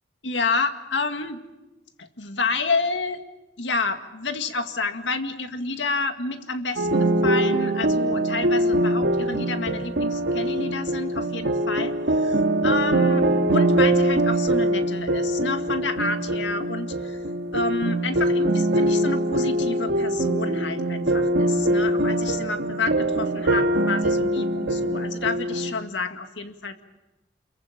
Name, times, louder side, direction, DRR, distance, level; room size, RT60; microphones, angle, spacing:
voice 1, 0.2-1.4 2.0-3.2 3.6-17.2 17.5-26.8, left 3 dB, 85° left, 7 dB, 2.0 m, -29 dB
sound 1, 6.8-25.7, right 1 dB, 85° right, 1.8 m, -23 dB
28.0 x 23.0 x 7.5 m, 1.0 s
head